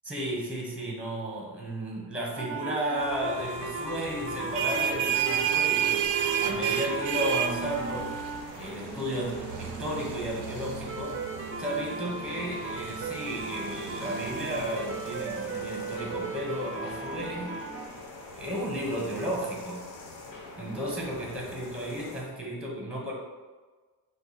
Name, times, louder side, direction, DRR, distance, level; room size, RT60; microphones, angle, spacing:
voice 1, 0.0-6.1 6.4-8.2 8.6-11.2 11.6-17.6 18.3-19.8 20.6-23.1, equal, ahead, -2 dB, 1.0 m, -33 dB
sound 1, 2.4-8.4 8.9-17.9, right 3 dB, 30° right, 0.5 m, -37 dB
sound 2, 3.0-22.2, left 2 dB, 75° left, 1.0 m, -45 dB
sound 3, 4.3-15.6, right 10 dB, 75° right, 0.6 m, -32 dB
5.2 x 2.1 x 4.0 m, 1.3 s
cardioid pair, 100°, 45 cm